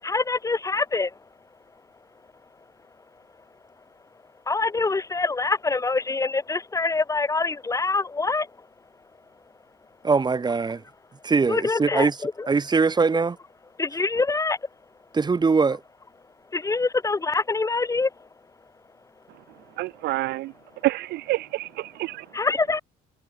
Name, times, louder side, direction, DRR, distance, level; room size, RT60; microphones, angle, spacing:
voice 1, 0.0-1.2 4.5-8.7 11.5-12.5 13.8-14.6 16.5-18.3 22.3-22.8, left 3 dB, 20° left, 2.6 m, -25 dB
voice 2, 10.0-10.8 11.2-12.1 12.5-13.4 15.1-15.8, right 4 dB, 25° right, 2.6 m, -21 dB
voice 3, 19.8-20.5 20.8-22.3, right 18 dB, 85° right, 2.0 m, -27 dB
cardioid pair, 110°, 17 cm